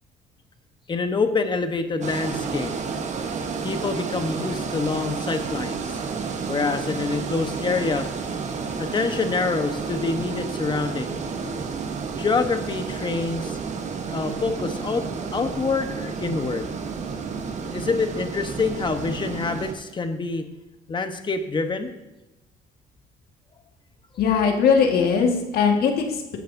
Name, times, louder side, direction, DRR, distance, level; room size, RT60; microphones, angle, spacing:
voice 1, 0.9-2.7 3.6-6.0 6.5-8.1 8.8-11.1 12.2-13.6 14.1-15.0 15.3-16.7 17.7-20.5 20.9-21.9, left 4 dB, 30° left, 7 dB, 1.1 m, -26 dB
sound 1, 2.0-19.7, right 5 dB, 45° right, 1.1 m, -31 dB
voice 2, 24.2-26.4, left 6 dB, 65° left, 2 dB, 1.7 m, -20 dB
15.5 x 10.5 x 2.7 m, 1.0 s
cardioid pair, 110°, 17 cm